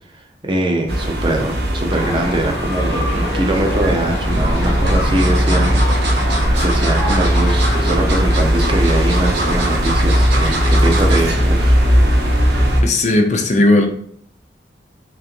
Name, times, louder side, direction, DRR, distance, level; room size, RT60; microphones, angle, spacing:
voice 1, 0.4-6.2 6.6-11.7, right 1 dB, 25° right, 2 dB, 0.6 m, -22 dB
sound 1, 0.9-12.8, equal, 60° right, 0.8 m, -17 dB
sound 2, 1.9-8.3, left 1 dB, 65° left, 1.0 m, -26 dB
sound 3, 3.8-3.9 4.6-11.3 11.7-12.0 12.3-12.4, right 2 dB, 80° right, 1.2 m, -26 dB
voice 2, 12.8-13.9, left 2 dB, 40° left, 3 dB, 0.5 m, -15 dB
3.8 x 3.3 x 2.9 m, 0.64 s
head